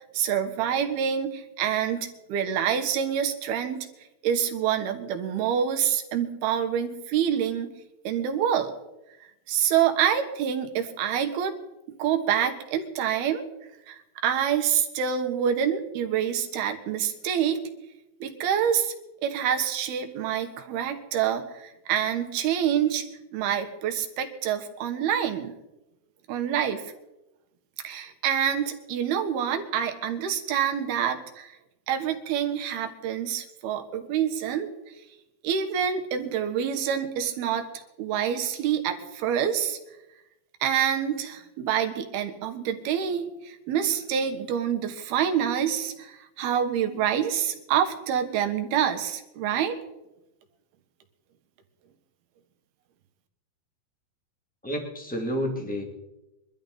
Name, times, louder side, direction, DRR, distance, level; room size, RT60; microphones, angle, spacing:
voice 1, 0.1-3.9 4.2-7.7 8.0-8.7 9.5-11.6 12.0-13.4 13.9-17.6 18.2-18.9 19.2-23.0 23.3-25.5 26.3-26.8 27.8-31.6 31.9-34.8 35.4-39.8 40.6-49.7, right 9 dB, 85° right, 6 dB, 3.2 m, -27 dB
voice 2, 54.6-55.8, equal, 5° left, 2 dB, 1.0 m, -30 dB
23.0 x 13.0 x 3.9 m, 0.96 s
omnidirectional pair, 4.4 m